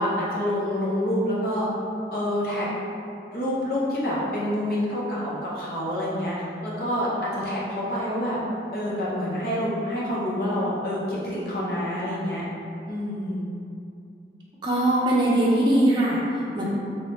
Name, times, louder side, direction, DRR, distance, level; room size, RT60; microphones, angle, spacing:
voice 1, 0.0-1.7 2.1-2.7 3.3-6.3 6.6-8.4 8.7-12.4 12.9-13.4, left 1 dB, 55° left, -7 dB, 0.8 m, -27 dB
voice 2, 14.6-16.6, right 1 dB, 25° right, -6 dB, 0.6 m, -21 dB
3.1 x 2.9 x 3.3 m, 2.6 s
head